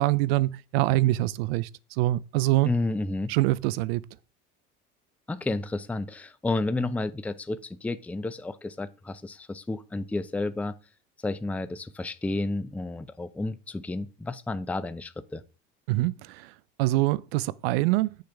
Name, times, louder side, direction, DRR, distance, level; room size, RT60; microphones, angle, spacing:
voice 1, 0.0-1.7 2.0-2.7 3.3-4.0 15.9-16.5 16.8-18.1, right 17 dB, 85° right, 0.5 m, -24 dB
voice 2, 2.6-3.3 5.3-10.7 11.2-15.4, left 2 dB, 5° left, 0.5 m, -31 dB
7.8 x 6.7 x 3.4 m
supercardioid pair, 105°, 30 cm